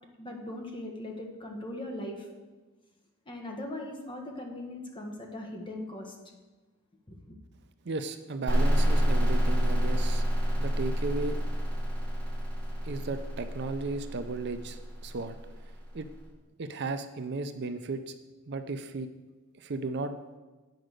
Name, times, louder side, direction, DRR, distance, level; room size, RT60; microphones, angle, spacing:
voice 1, 0.2-2.3 3.3-6.2 7.1-7.2, left 1 dB, 25° left, 2 dB, 1.3 m, -39 dB
voice 2, 7.8-10.2 10.6-11.4 12.8-15.4 15.9-16.1 16.6-18.1 18.5-19.1 19.5-20.1, right 3 dB, 50° right, 9 dB, 0.5 m, -35 dB
sound 1, 8.5-16.0, equal, 5° left, 2.2 m, -28 dB
9.2 x 5.0 x 6.5 m, 1.2 s
head